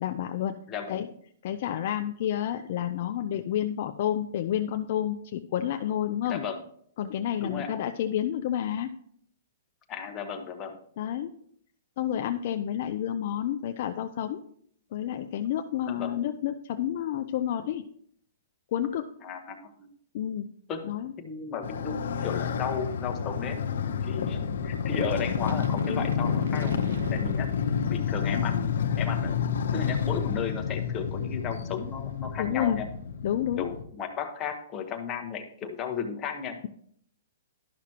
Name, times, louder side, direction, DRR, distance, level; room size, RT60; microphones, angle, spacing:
voice 1, 0.0-0.5 0.9-1.1 1.4-6.4 7.0-8.9 11.0-11.3 12.0-14.4 14.9-17.8 18.7-19.1 20.1-20.5 20.8-21.1 32.4-32.8 33.2-33.6, left 10 dB, 50° left, 6 dB, 0.4 m, -30 dB
voice 2, 0.7-1.1 6.2-6.6 7.4-7.7 9.9-10.8 15.9-16.1 19.2-19.9 20.7-20.9 21.2-23.6 24.0-27.5 27.9-29.4 29.7-32.9 33.6-36.6, left 6 dB, 20° left, 3 dB, 1.0 m, -34 dB
Motorcycle, 21.6-33.8, left 7 dB, 75° left, 0.8 m, -29 dB
sound 1, 25.2-28.0, right 5 dB, 90° right, 0.7 m, -44 dB
11.5 x 6.0 x 2.9 m, 0.64 s
hypercardioid pair, 150°, 0 cm